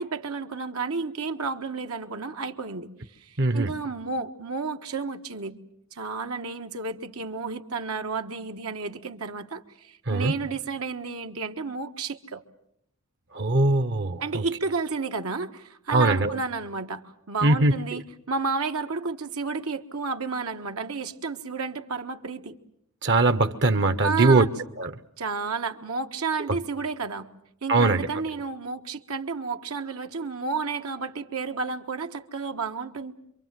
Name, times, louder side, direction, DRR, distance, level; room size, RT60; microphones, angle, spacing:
voice 1, 0.0-2.9 3.2-5.6 5.9-12.4 14.2-22.6 24.0-24.5 25.2-27.3 27.6-33.1, right 4 dB, 80° right, 1.5 m, -31 dB
voice 2, 3.4-3.7 10.1-10.3 13.3-14.4 15.9-16.4 17.4-18.0 23.0-24.4 24.8-24.9 27.7-28.1, right 2 dB, 55° right, 1.0 m, -21 dB
27.0 x 24.0 x 7.6 m
head